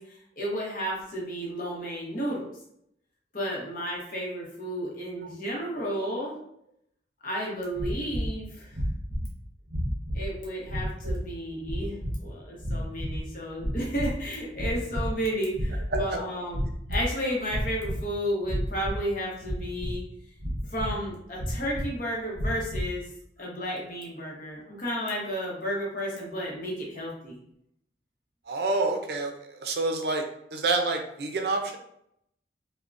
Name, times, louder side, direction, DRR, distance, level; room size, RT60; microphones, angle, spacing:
voice 1, 0.0-2.5 3.3-6.3 7.2-8.8 10.1-11.9 12.2-20.0 20.7-23.0 23.4-27.4, equal, 50° left, -3 dB, 0.9 m, -32 dB
sound 1, 7.7-8.3 8.7-9.3 9.7-10.3 10.6-11.2 11.6-12.2 12.6-13.3 13.5-14.2 14.5-15.2 15.5-16.1 16.5-17.1 17.4-18.0 18.4-19.0 19.4-20.0 20.4-21.0 21.4-21.9 22.3-22.9, equal, 25° right, 0.9 m, -31 dB
voice 2, 28.5-30.2 30.5-31.8, right 3 dB, 65° right, 4 dB, 0.5 m, -28 dB
3.5 x 2.1 x 2.5 m, 0.73 s
head